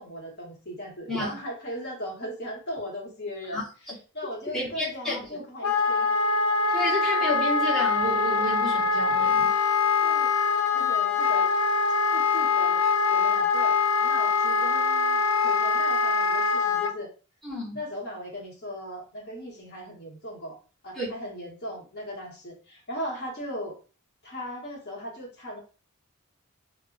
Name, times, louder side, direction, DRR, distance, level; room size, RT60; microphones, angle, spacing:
voice 1, 0.0-6.2 10.0-10.3 10.7-11.5 12.1-12.8 13.1-17.1 17.7-20.6 20.8-23.8 24.2-25.6, equal, 45° left, -2 dB, 1.0 m, -38 dB
voice 2, 3.5-3.9 4.5-5.3 6.7-9.5 17.4-17.8 21.0-21.1, left 2 dB, ahead, -7 dB, 0.7 m, -31 dB
Wind instrument woodwind instrument, 5.6-16.9, left 5 dB, 70° left, 0.4 m, -23 dB
2.1 x 2.0 x 3.6 m, 0.36 s
head